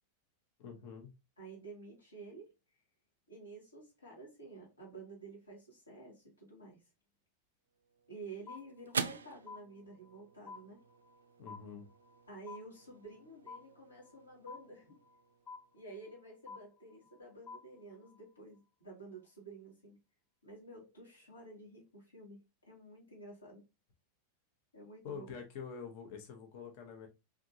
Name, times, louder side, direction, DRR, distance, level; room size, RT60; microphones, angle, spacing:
voice 1, 0.6-1.1 11.4-11.9 25.0-27.1, left 6 dB, 45° left, 0.9 m, -46 dB
voice 2, 1.4-2.5 3.3-6.8 8.1-10.8 12.3-15.0 15.7-20.0 20.4-23.6 24.7-25.3, right 3 dB, 80° left, 1.9 m, -51 dB
sound 1, 7.7-16.2, right 6 dB, 70° right, 0.3 m, -46 dB
sound 2, 8.5-9.2 9.5-10.2 10.5-11.2 11.5-12.2 12.5-13.2 13.5-14.2 14.5-15.2 15.5-16.2 16.5-17.2 17.5-18.2, left 4 dB, 25° left, 0.7 m, -51 dB
3.6 x 3.5 x 2.7 m
figure-of-eight pair, 90°, 0 cm